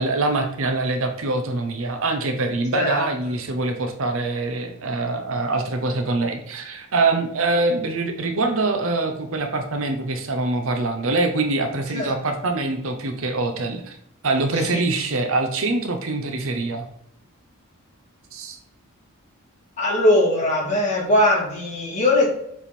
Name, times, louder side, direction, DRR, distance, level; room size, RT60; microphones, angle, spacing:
voice 1, 0.0-14.0 14.2-16.9 18.3-18.6, right 2 dB, 65° right, 6 dB, 0.8 m, -24 dB
voice 2, 19.8-22.3, left 1 dB, 30° left, -4 dB, 2.5 m, -20 dB
7.2 x 3.6 x 4.3 m, 0.72 s
head